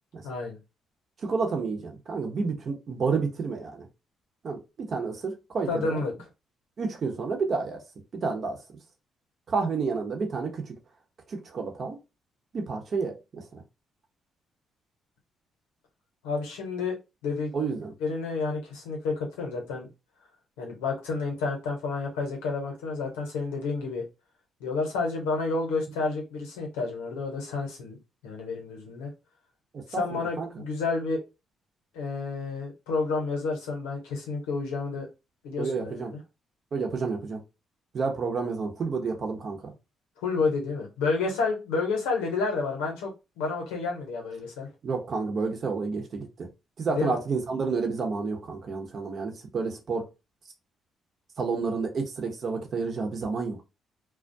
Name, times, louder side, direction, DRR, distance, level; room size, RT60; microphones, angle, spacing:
voice 1, 0.2-0.6 5.7-6.1 16.2-17.0 17.2-17.5 18.0-19.9 20.6-24.0 24.6-28.0 28.2-29.1 29.9-31.2 31.9-35.1 35.4-36.2 40.2-43.1 43.4-44.7 46.9-47.2, left 4 dB, 90° left, 0.8 m, -30 dB
voice 2, 1.2-3.9 4.4-6.0 6.8-7.8 8.1-8.6 9.5-10.7 11.3-12.0 12.5-13.6 17.5-17.9 29.7-30.6 35.6-36.1 36.7-37.4 37.9-39.7 44.8-46.5 46.8-50.0 51.4-53.6, right 4 dB, 55° right, 0.8 m, -30 dB
2.3 x 2.1 x 2.6 m
supercardioid pair, 55°, 0 cm